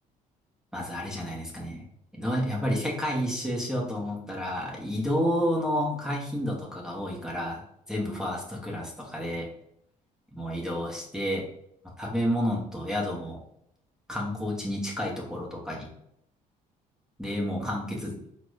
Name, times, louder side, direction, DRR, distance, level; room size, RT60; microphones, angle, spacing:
voice 1, 0.7-1.8 2.1-7.6 7.9-9.5 10.3-11.4 12.0-13.4 14.1-15.9 17.2-18.2, equal, 5° right, -2 dB, 0.7 m, -30 dB
4.7 x 2.1 x 2.3 m, 0.74 s
cardioid pair, 140°, 14 cm